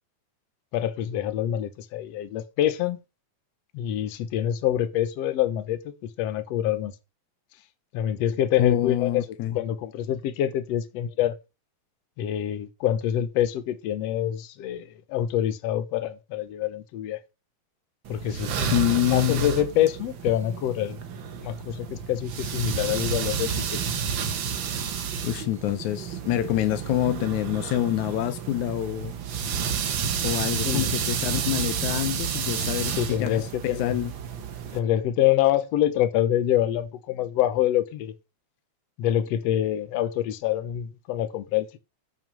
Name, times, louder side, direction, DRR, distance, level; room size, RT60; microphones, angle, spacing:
voice 1, 0.7-3.0 3.7-5.8 6.2-6.9 7.9-9.2 9.5-11.4 12.2-17.2 18.1-18.7 19.1-21.0 21.4-23.5 30.7-30.9 33.0-34.0 34.7-38.1 39.0-41.8, left 11 dB, 70° left, 2.0 m, -26 dB
voice 2, 8.6-9.6 18.7-19.5 25.2-29.1 30.2-34.1, left 14 dB, 85° left, 2.2 m, -26 dB
sound 1, 18.1-34.8, right 7 dB, 60° right, 1.4 m, -30 dB
8.9 x 6.0 x 5.4 m
omnidirectional pair, 3.3 m